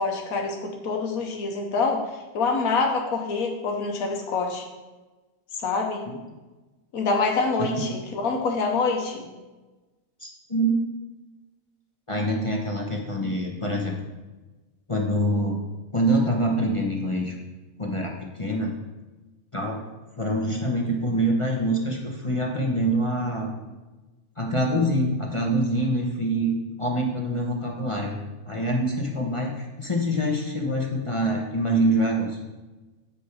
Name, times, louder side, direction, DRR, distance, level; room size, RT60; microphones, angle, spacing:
voice 1, 0.0-4.6 5.6-6.1 6.9-9.3, left 4 dB, 85° left, 1 dB, 1.4 m, -26 dB
voice 2, 10.2-10.8 12.1-13.9 14.9-15.6 15.9-17.3 17.8-18.7 19.5-19.8 20.2-23.6 24.4-26.5 26.8-28.2 28.5-32.4, right 1 dB, 25° left, -1 dB, 0.9 m, -25 dB
8.0 x 6.3 x 4.7 m, 1.2 s
omnidirectional pair, 1.5 m